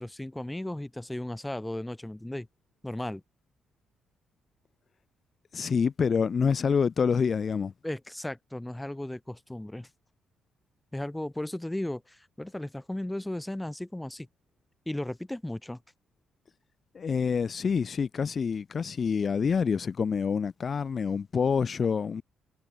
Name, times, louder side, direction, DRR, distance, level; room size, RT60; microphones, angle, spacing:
voice 1, 0.0-2.5 2.8-3.2 7.8-9.9 10.9-14.3 14.8-15.8, left 1 dB, 10° left, 1.4 m, -35 dB
voice 2, 5.5-7.7 16.9-22.2, left 6 dB, 45° left, 1.4 m, -27 dB
cardioid pair, 85°, 0 cm